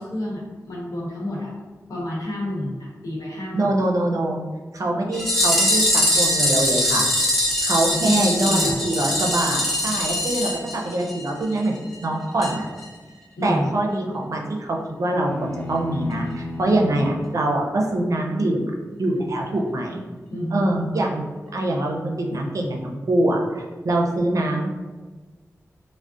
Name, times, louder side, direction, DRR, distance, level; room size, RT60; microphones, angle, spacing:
voice 1, 0.0-1.5 1.9-3.7 7.9-8.8 13.4-13.7 20.3-20.8, left 1 dB, 70° left, -5 dB, 1.0 m, -29 dB
voice 2, 3.5-4.4 4.7-7.1 7.6-12.7 13.4-18.7 19.0-20.0 20.5-21.3 21.5-24.7, right 1 dB, 60° right, 0 dB, 0.5 m, -24 dB
sound 1, 5.1-11.3 11.6-11.7 11.9-12.0 12.4-12.5 12.8-12.9, left 1 dB, 5° left, 0.7 m, -22 dB
sound 2, 15.1-17.4, left 2 dB, 35° left, 0.5 m, -33 dB
2.4 x 2.0 x 3.6 m, 1.3 s
wide cardioid pair, 70°, 6 cm